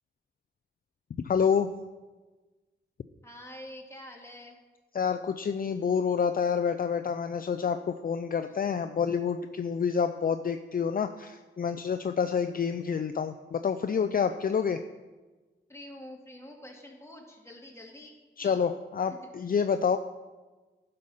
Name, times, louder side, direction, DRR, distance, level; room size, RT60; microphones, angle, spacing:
voice 1, 1.2-1.7 4.9-14.8 18.4-20.0, left 6 dB, 45° left, 9 dB, 0.5 m, -28 dB
voice 2, 3.2-4.6 8.4-8.5 15.7-18.1 18.4-18.6, left 1 dB, 15° left, -1 dB, 2.5 m, -46 dB
10.5 x 6.6 x 5.6 m, 1.3 s
cardioid pair, 60°, 20 cm